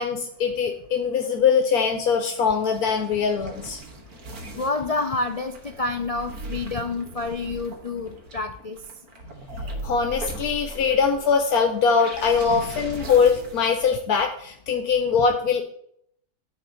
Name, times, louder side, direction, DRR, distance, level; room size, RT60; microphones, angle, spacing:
voice 1, 0.0-3.8 9.8-15.6, left 6 dB, 80° left, 4 dB, 1.4 m, -22 dB
sound 1, 2.4-14.0, right 1 dB, 75° right, 2.0 m, -39 dB
voice 2, 4.6-8.8, left 3 dB, 60° left, 6 dB, 0.3 m, -28 dB
9.5 x 4.2 x 6.9 m, 0.69 s
omnidirectional pair, 1.6 m